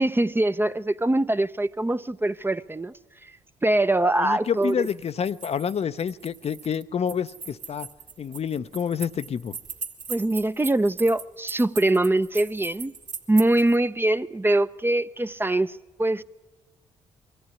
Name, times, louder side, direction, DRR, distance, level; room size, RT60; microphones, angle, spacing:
voice 1, 0.0-2.9 3.6-4.9 10.1-12.9 13.3-16.2, right 1 dB, 15° right, 0.6 m, -23 dB
voice 2, 4.2-7.9 8.2-9.6, left 7 dB, 50° left, 0.6 m, -28 dB
sound 1, 4.4-13.8, right 5 dB, 65° right, 2.2 m, -39 dB
22.5 x 14.5 x 9.5 m
hypercardioid pair, 50°, 14 cm